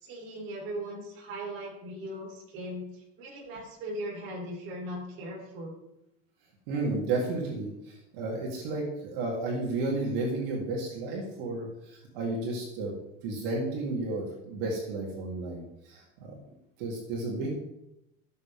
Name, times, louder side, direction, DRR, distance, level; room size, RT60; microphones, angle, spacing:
voice 1, 0.0-5.8, right 1 dB, 40° right, -1 dB, 3.8 m, -39 dB
voice 2, 6.7-12.9 13.2-16.3 16.8-17.5, right 2 dB, 65° right, -2 dB, 3.5 m, -32 dB
16.5 x 7.6 x 3.7 m, 0.84 s
cardioid pair, 170°, 30 cm